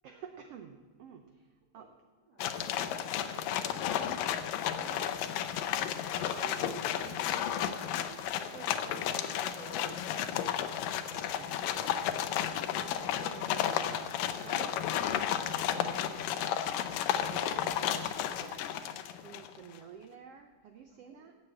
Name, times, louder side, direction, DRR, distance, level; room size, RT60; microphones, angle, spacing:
voice 1, 0.0-1.5 1.7-1.9 4.7-5.2 6.1-10.6 11.1-11.6 12.6-18.8 19.2-21.3, right 7 dB, 85° right, 6 dB, 1.3 m, -50 dB
voice 2, 2.2-5.0 5.4-5.9 21.0-21.3, right 3 dB, 55° right, -5 dB, 3.3 m, -57 dB
sound 1, 2.4-19.6, left 10 dB, 90° left, 2.4 m, -33 dB
16.5 x 7.3 x 7.7 m, 1.4 s
omnidirectional pair, 3.8 m